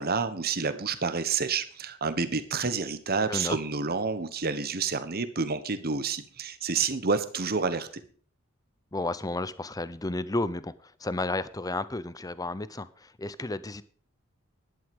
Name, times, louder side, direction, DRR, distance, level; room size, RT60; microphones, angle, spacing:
voice 1, 0.0-7.9, right 5 dB, 45° right, 12 dB, 1.2 m, -29 dB
voice 2, 8.9-10.7 11.0-13.8, left 2 dB, 15° left, 16 dB, 0.7 m, -32 dB
11.5 x 11.0 x 5.3 m, 0.44 s
head